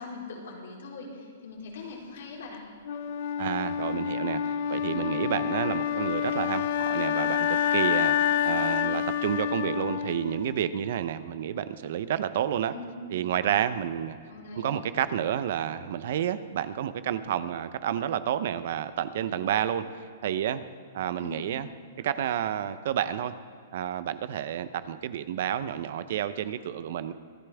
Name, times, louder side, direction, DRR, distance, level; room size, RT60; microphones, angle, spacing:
voice 1, 0.0-2.6 12.7-13.1 14.3-14.8 21.2-21.6, left 3 dB, 70° left, -1 dB, 3.6 m, -41 dB
Wind instrument woodwind instrument, 2.8-10.9, left 9 dB, 55° left, 0.7 m, -28 dB
voice 2, 3.4-12.7 13.1-14.2 14.6-19.9 20.2-20.6 20.9-21.7 22.0-23.3 23.7-27.1, right 10 dB, 60° right, 13 dB, 0.8 m, -30 dB
25.5 x 9.9 x 3.5 m, 2.2 s
hypercardioid pair, 150°, 0 cm